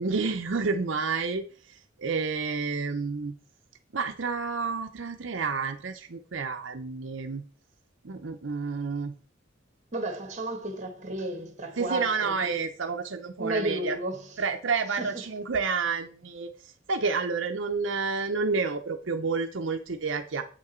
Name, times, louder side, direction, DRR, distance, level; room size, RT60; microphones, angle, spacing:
voice 1, 0.0-3.3 3.9-7.4 8.0-9.1 11.8-14.0 14.4-20.4, right 4 dB, 70° right, 0.7 m, -30 dB
voice 2, 9.9-12.1 12.4-12.5 13.4-14.2 15.0-15.1, right 1 dB, 35° right, 1.6 m, -32 dB
8.2 x 6.2 x 4.4 m
head